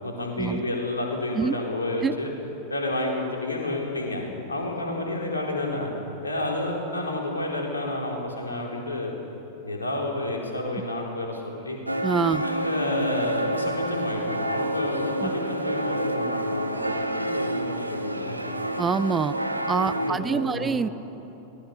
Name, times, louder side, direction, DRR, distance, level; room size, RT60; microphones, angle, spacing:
voice 1, 0.0-2.3 2.7-4.2 4.5-5.9 6.2-9.1 9.6-11.8 12.4-18.3 19.9-20.7, left 1 dB, 80° left, 0 dB, 4.0 m, -30 dB
sound 1, 11.9-20.1, right 1 dB, 85° right, 1.2 m, -29 dB
voice 2, 12.0-12.4 15.2-15.3 18.8-19.3 19.7-20.9, right 5 dB, 15° right, 14 dB, 0.6 m, -25 dB
24.0 x 19.5 x 6.7 m, 2.9 s
figure-of-eight pair, 90°, 0 cm